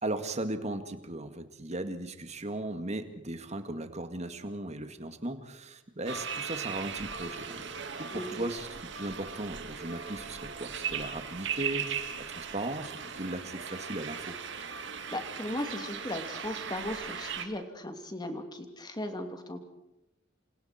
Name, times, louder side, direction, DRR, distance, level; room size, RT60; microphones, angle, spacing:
voice 1, 0.0-8.7 8.9-12.1 12.4-14.4, right 1 dB, 35° right, 8 dB, 2.2 m, -37 dB
sound 1, 6.1-17.5, right 6 dB, 65° right, 2.4 m, -38 dB
voice 2, 8.1-8.4 15.1-19.6, left 1 dB, 20° left, 6 dB, 2.9 m, -37 dB
28.5 x 28.0 x 4.5 m, 0.87 s
head